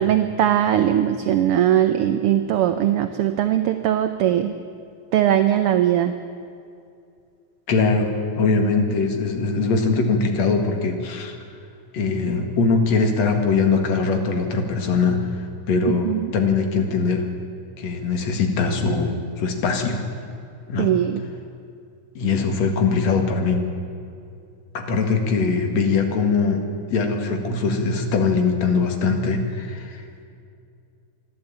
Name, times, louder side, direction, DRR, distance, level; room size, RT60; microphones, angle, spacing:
voice 1, 0.0-4.5 5.1-6.1 15.9-16.3 20.8-21.2, right 11 dB, 75° right, 9 dB, 1.3 m, -20 dB
voice 2, 7.7-11.4 11.9-15.3 15.7-17.3 17.8-20.0 20.7-20.9 22.2-23.6 24.7-30.0, left 4 dB, 65° left, 4 dB, 3.0 m, -21 dB
26.0 x 11.5 x 8.9 m, 2.4 s
omnidirectional pair, 3.4 m